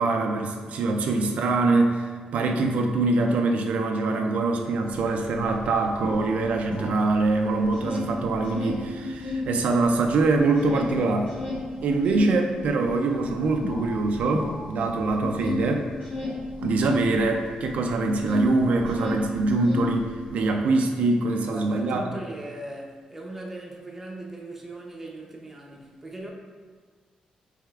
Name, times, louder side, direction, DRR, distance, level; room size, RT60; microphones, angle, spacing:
voice 1, 0.0-11.3 11.8-15.9 16.6-22.0, right 3 dB, 70° right, 3 dB, 0.3 m, -24 dB
sound 1, 5.0-5.1 5.3-7.3 7.6-9.5 9.8-18.5 18.8-20.3, left 3 dB, 80° left, 1.4 m, -33 dB
voice 2, 21.3-26.3, right 1 dB, 10° right, -2 dB, 0.6 m, -39 dB
4.8 x 3.3 x 2.3 m, 1.6 s
cardioid pair, 130°, 2 cm